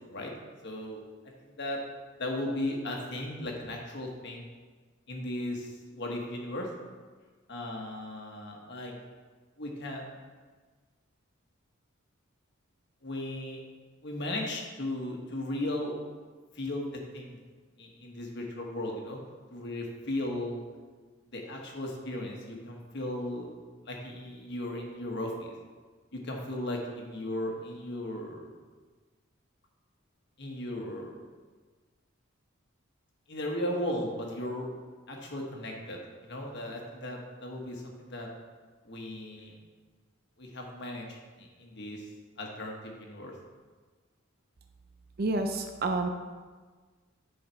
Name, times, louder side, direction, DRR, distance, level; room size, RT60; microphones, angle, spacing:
voice 1, 0.6-1.0 1.4-1.8 2.2-4.5 5.1-6.7 7.5-8.9 9.6-10.2 13.0-13.6 14.0-16.0 16.5-17.4 17.8-19.2 19.5-20.6 21.3-23.5 23.8-25.5 26.1-28.5 30.4-31.2 33.3-34.7 35.1-38.3 38.8-39.6 40.4-42.0 42.4-43.3, left 1 dB, 55° left, 0 dB, 1.4 m, -36 dB
voice 2, 45.2-46.1, right 2 dB, 50° right, 5 dB, 0.5 m, -29 dB
9.8 x 4.8 x 4.5 m, 1.4 s
head